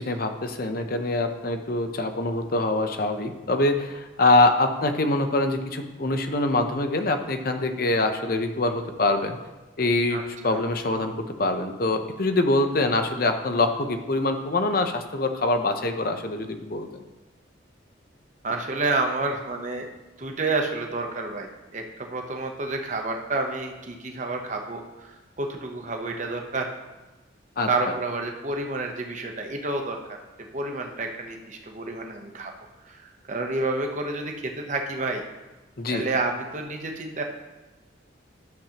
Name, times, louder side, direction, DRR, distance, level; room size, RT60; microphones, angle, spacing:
voice 1, 0.0-9.4 9.8-17.0 27.6-27.7 35.8-36.1, left 2 dB, 50° left, 7 dB, 0.7 m, -24 dB
voice 2, 10.1-10.6 18.4-19.9 20.2-26.7 27.7-30.0 30.5-32.5 32.8-35.2 35.9-37.2, right 3 dB, 40° right, 3 dB, 0.9 m, -29 dB
12.0 x 7.2 x 2.9 m, 1.1 s
head